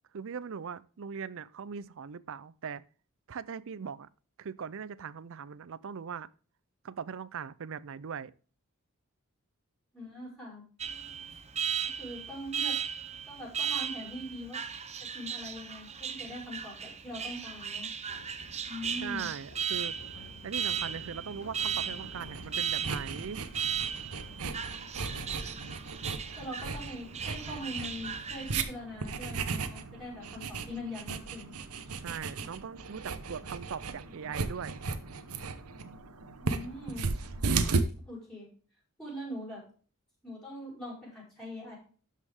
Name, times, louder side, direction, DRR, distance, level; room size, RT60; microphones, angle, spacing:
voice 1, 0.1-2.8 3.3-4.1 4.4-6.3 6.8-8.3 19.0-20.0 20.4-23.4 31.9-34.8, right 6 dB, 60° right, 0.5 m, -40 dB
voice 2, 9.9-10.6 11.8-12.8 13.3-14.6 15.1-17.9 18.7-19.3 26.4-31.5 36.4-37.1 38.1-38.5 39.0-39.6 40.2-41.8, left 1 dB, 5° left, 5.2 m, -42 dB
Alarm, 10.8-28.6, right 8 dB, 30° right, 0.8 m, -36 dB
sound 1, 18.0-25.8, left 1 dB, 85° left, 1.6 m, -51 dB
sound 2, 22.2-37.8, right 4 dB, 85° right, 1.0 m, -36 dB
12.5 x 5.5 x 3.5 m
head